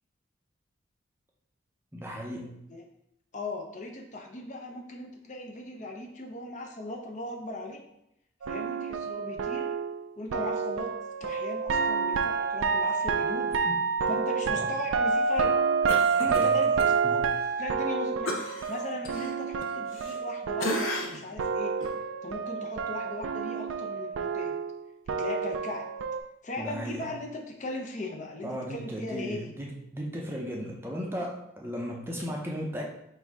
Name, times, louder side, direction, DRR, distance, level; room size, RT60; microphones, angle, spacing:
voice 1, 1.9-2.6 13.4-13.8 14.1-14.2 14.5-14.7 16.2-16.6 17.0-17.3 26.6-27.1 28.4-32.9, equal, 10° right, -1 dB, 0.5 m, -36 dB
voice 2, 3.3-7.8 8.4-9.7 10.2-10.9 11.2-13.5 14.1-15.5 16.1-17.2 17.6-18.3 18.7-21.7 22.2-24.6 25.1-25.9 26.4-29.5, left 1 dB, 40° left, 3 dB, 0.5 m, -38 dB
sound 1, 8.4-21.1 21.4-26.2, right 5 dB, 90° right, 0.3 m, -28 dB
Cough, 15.9-16.9 17.3-17.4 18.3-20.3 20.6-21.3 21.8-21.9, left 2 dB, 90° left, 0.7 m, -35 dB
4.0 x 2.6 x 4.6 m, 0.80 s
head